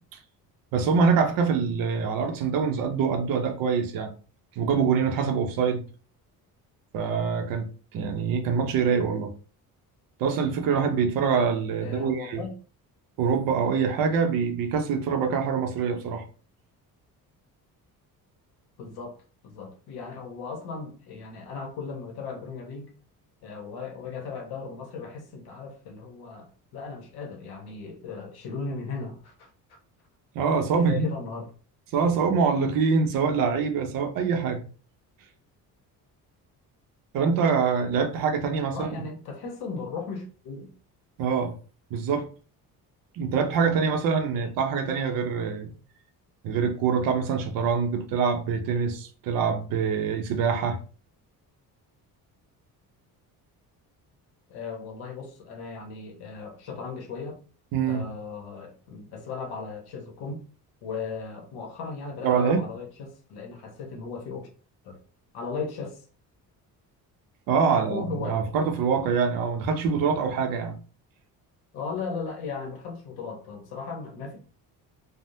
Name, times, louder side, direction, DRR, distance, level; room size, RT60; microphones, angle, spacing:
voice 1, 0.7-4.1 4.6-5.8 6.9-9.3 10.2-12.4 13.2-16.2 30.3-31.1 31.9-34.6 37.1-39.0 41.2-41.5 41.9-42.3 43.1-45.7 46.4-50.8 57.7-58.0 62.2-62.7 67.5-70.7, right 6 dB, 65° right, 0.6 m, -25 dB
voice 2, 11.8-12.5 18.8-19.1 19.4-22.9 23.4-29.5 30.8-31.5 38.7-40.7 54.5-57.4 57.8-60.3 60.8-64.5 64.8-65.0 65.3-66.0 67.7-68.4 71.7-74.4, left 5 dB, 80° left, 0.9 m, -37 dB
3.4 x 2.0 x 2.6 m
cardioid pair, 170°, 37 cm